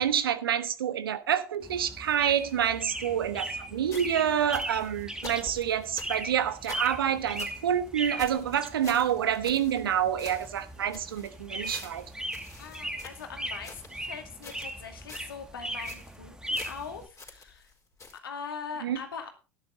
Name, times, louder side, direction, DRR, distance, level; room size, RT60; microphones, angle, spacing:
voice 1, 0.0-12.1 18.8-19.0, right 9 dB, 85° right, 1.2 m, -28 dB
sound 1, 1.6-17.1, right 1 dB, 5° right, 1.8 m, -39 dB
sound 2, 3.9-7.6 7.9-8.0 8.2-9.9 10.2-14.0 14.4-14.8 15.1-15.4 15.7-16.2 16.5-17.7 18.0-18.2, left 3 dB, 25° left, 4.4 m, -47 dB
voice 2, 12.6-17.7 18.2-19.3, left 6 dB, 85° left, 2.5 m, -41 dB
12.5 x 10.5 x 4.0 m
hypercardioid pair, 80°, 12 cm